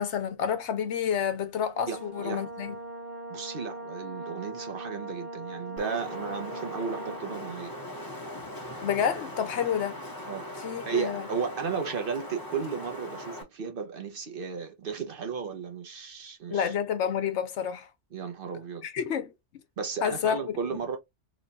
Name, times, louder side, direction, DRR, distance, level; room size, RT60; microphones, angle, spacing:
voice 1, 0.0-2.7 8.8-10.0 10.6-11.2 16.5-17.9 18.8-19.3 20.0-20.4, left 8 dB, 75° left, 1.0 m, -29 dB
Brass instrument, 1.7-7.6, right 1 dB, 40° right, 1.2 m, -40 dB
voice 2, 1.9-2.5 3.3-7.8 10.3-16.7 18.1-18.9 19.8-21.0, right 6 dB, 55° right, 0.8 m, -34 dB
Wind, 5.8-13.4, left 1 dB, 20° left, 0.9 m, -40 dB
3.0 x 2.2 x 3.8 m
omnidirectional pair, 1.2 m